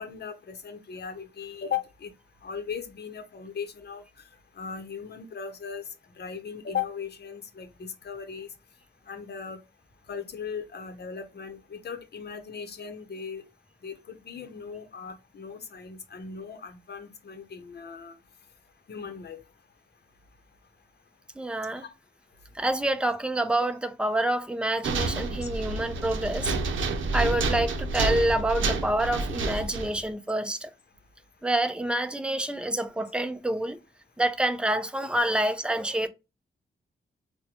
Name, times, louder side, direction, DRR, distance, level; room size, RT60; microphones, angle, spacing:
voice 1, 0.0-2.1 2.4-4.0 4.6-5.8 6.2-8.5 9.1-9.6 10.1-13.4 13.8-18.1 18.9-19.4 21.7-21.9 23.6-23.7, left 7 dB, 55° left, 0.7 m, -37 dB
voice 2, 21.4-21.8 22.5-26.5 27.1-30.7 31.4-33.8 34.2-36.1, right 1 dB, 5° right, 0.5 m, -27 dB
sound 1, 24.8-30.0, right 3 dB, 80° right, 0.6 m, -29 dB
3.8 x 2.1 x 2.9 m
cardioid pair, 60°, 20 cm